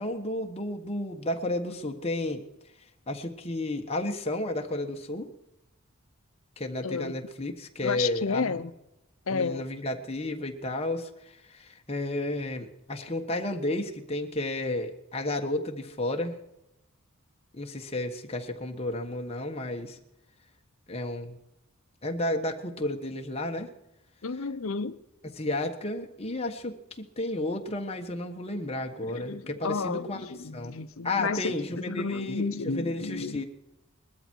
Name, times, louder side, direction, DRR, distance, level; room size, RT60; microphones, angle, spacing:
voice 1, 0.0-2.4 3.1-5.3 6.6-8.7 9.3-16.4 17.5-20.0 20.9-21.4 22.0-23.7 25.3-30.2 30.5-30.8 31.0-33.4, left 1 dB, 30° left, 1.4 m, -32 dB
voice 2, 6.8-7.1 7.8-8.7 9.3-9.6 24.2-25.0 29.0-33.4, left 4 dB, 70° left, 0.7 m, -32 dB
20.5 x 13.0 x 4.6 m
head